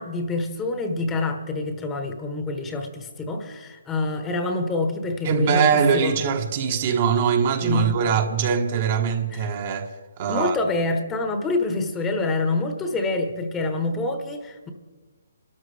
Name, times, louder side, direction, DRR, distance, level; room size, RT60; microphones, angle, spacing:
voice 1, 0.0-6.1 7.6-7.9 9.3-9.5 10.3-14.7, left 2 dB, 15° left, 1.1 m, -26 dB
voice 2, 5.2-9.9 10.2-10.6, right 6 dB, 40° right, 1.2 m, -22 dB
25.5 x 13.0 x 3.4 m
hypercardioid pair, 150°, 0 cm